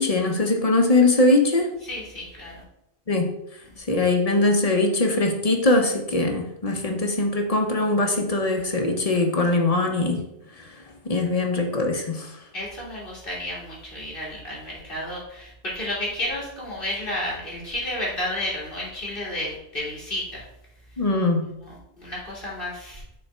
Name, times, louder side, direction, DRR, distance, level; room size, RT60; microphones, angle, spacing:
voice 1, 0.0-1.7 3.1-3.3 3.9-10.2 10.6-10.7 11.0-12.3 21.0-21.5, left 2 dB, 35° left, 2 dB, 0.9 m, -21 dB
voice 2, 1.9-2.5 12.5-20.4 21.6-21.7 22.0-23.0, left 1 dB, 50° left, -5 dB, 2.4 m, -31 dB
6.5 x 3.5 x 4.3 m, 0.79 s
omnidirectional pair, 1.1 m